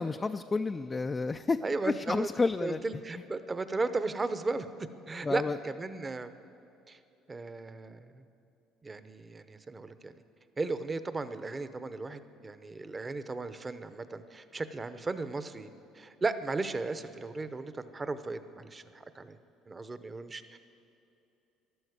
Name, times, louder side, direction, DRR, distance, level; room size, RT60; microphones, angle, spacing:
voice 1, 0.0-3.0 5.2-5.6, left 3 dB, 25° left, 8 dB, 0.3 m, -31 dB
voice 2, 1.6-2.3 2.6-6.3 6.9-7.0 7.3-8.2 8.8-10.1 10.6-15.7 15.9-18.8 19.1-19.4 19.7-20.6, right 3 dB, 25° right, 12 dB, 0.8 m, -35 dB
12.5 x 12.0 x 8.2 m, 2.8 s
supercardioid pair, 95°, 0 cm